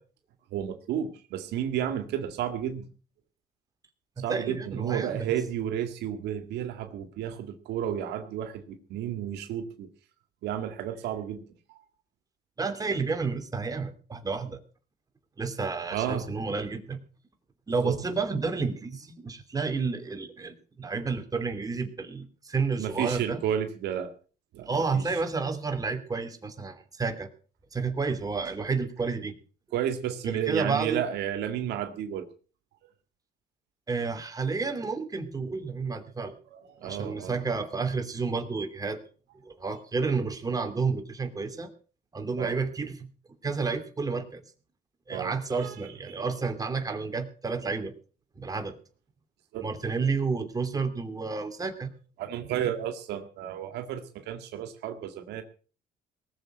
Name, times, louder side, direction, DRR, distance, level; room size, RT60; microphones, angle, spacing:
voice 1, 0.5-2.9 4.2-9.9 10.4-11.4 11.7-11.8 15.9-16.3 17.8-18.0 22.8-24.1 24.5-25.0 29.7-32.3 36.5-37.4 42.4-42.5 45.1-45.3 45.6-45.7 46.1-46.2 49.5-50.1 52.2-55.4, right 10 dB, 80° right, 7 dB, 2.1 m, -32 dB
voice 2, 4.2-5.3 12.6-14.6 15.4-17.0 17.7-23.4 24.7-27.3 27.7-29.3 30.2-31.0 33.9-36.4 36.8-39.0 39.4-41.7 42.1-43.1 43.4-44.4 45.1-47.9 48.4-48.8 49.6-51.9, right 4 dB, 20° right, 6 dB, 2.9 m, -30 dB
19.5 x 7.3 x 8.1 m, 0.40 s
cardioid pair, 110°, 17 cm